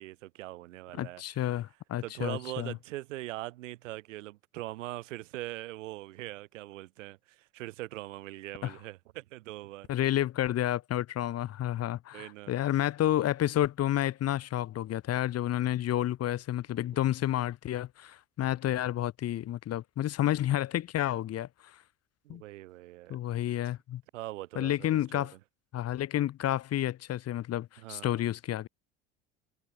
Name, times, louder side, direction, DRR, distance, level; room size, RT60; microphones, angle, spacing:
voice 1, 0.0-1.6 2.0-9.9 12.1-12.5 16.7-16.8 22.2-23.2 24.1-25.3 27.8-28.2, right 17 dB, 85° right, 1.3 m, -42 dB
voice 2, 1.0-2.8 8.6-8.7 9.9-21.5 22.3-22.4 23.1-24.0 24.6-25.3 25.7-28.7, left 12 dB, 40° left, 0.9 m, -30 dB
hypercardioid pair, 75°, 37 cm